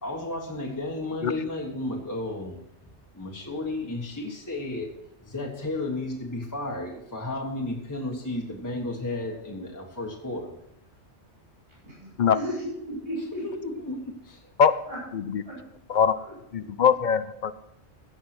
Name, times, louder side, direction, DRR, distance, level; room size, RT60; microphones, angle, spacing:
voice 1, 0.0-2.6 3.1-4.9 5.2-10.5 13.3-14.4, left 2 dB, 15° left, -1 dB, 1.4 m, -33 dB
voice 2, 11.8-13.7 14.9-15.0 15.4-15.6, equal, 65° right, -7 dB, 5.8 m, -35 dB
voice 3, 16.5-17.5, left 7 dB, 55° left, 13 dB, 0.6 m, -21 dB
16.0 x 5.8 x 6.1 m, 0.79 s
omnidirectional pair, 1.2 m